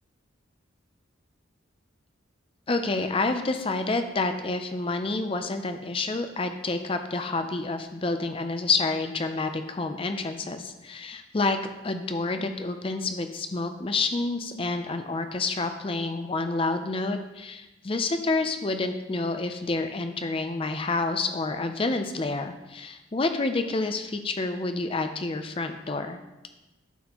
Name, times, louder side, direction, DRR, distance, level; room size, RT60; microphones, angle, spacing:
voice 1, 2.7-11.6 11.8-26.2, left 3 dB, 25° left, 7 dB, 0.5 m, -28 dB
12.0 x 4.2 x 3.0 m, 1.0 s
head